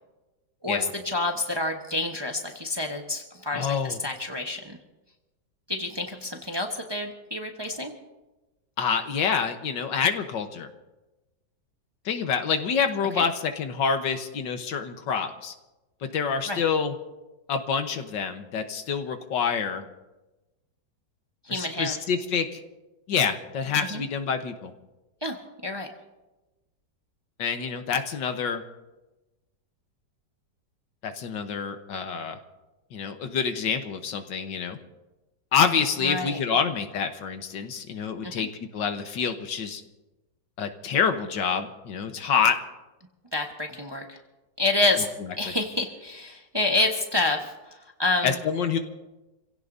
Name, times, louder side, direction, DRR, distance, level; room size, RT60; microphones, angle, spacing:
voice 1, 1.0-4.8 5.7-7.9 13.2-13.3 16.5-16.6 21.5-22.0 23.9-24.0 25.2-25.4 25.6-25.9 36.0-36.4 38.2-38.5 43.3-44.2 44.6-45.1 45.4-47.5 48.0-48.4, left 2 dB, 15° right, 2 dB, 1.0 m, -28 dB
voice 2, 3.5-4.0 8.8-10.7 12.1-15.5 16.1-16.9 17.5-19.8 21.5-22.6 23.1-24.7 27.4-28.6 31.0-32.4 32.9-34.8 35.5-38.5 38.7-39.8 40.6-42.6 45.2-45.3 48.2-48.8, left 6 dB, 80° left, 7 dB, 1.8 m, -27 dB
28.5 x 16.5 x 2.7 m, 1.1 s
omnidirectional pair, 2.0 m